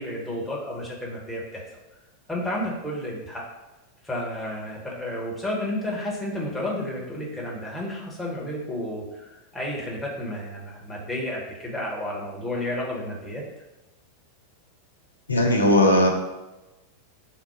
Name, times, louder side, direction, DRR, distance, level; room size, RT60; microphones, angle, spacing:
voice 1, 0.0-1.6 2.3-3.4 4.0-13.4, left 1 dB, 5° left, -5 dB, 1.1 m, -31 dB
voice 2, 15.3-16.1, left 1 dB, 80° left, 2 dB, 0.6 m, -18 dB
3.7 x 2.2 x 4.3 m, 1.0 s
figure-of-eight pair, 90°, 0 cm